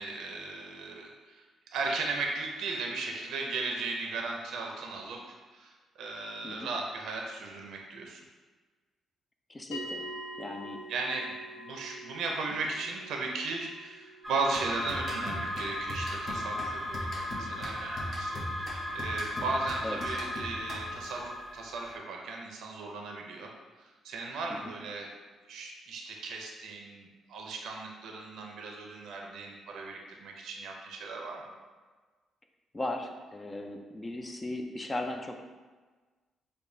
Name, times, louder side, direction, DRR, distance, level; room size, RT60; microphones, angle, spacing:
voice 1, 0.0-1.4 1.7-8.2 10.9-23.5 23.8-25.1 25.5-31.5, right 3 dB, 80° right, 1 dB, 0.4 m, -36 dB
voice 2, 9.5-10.1 10.4-10.8 19.8-20.2 24.5-24.7 32.7-35.4, left 1 dB, 20° left, 4 dB, 0.3 m, -37 dB
sound 1, 9.7-20.3, right 1 dB, 80° left, 0.7 m, -47 dB
sound 2, 14.2-22.0, left 1 dB, 10° right, 0.7 m, -37 dB
sound 3, 14.5-21.2, left 1 dB, 45° left, 0.8 m, -41 dB
4.8 x 2.2 x 2.6 m, 1.4 s
cardioid pair, 90°, 0 cm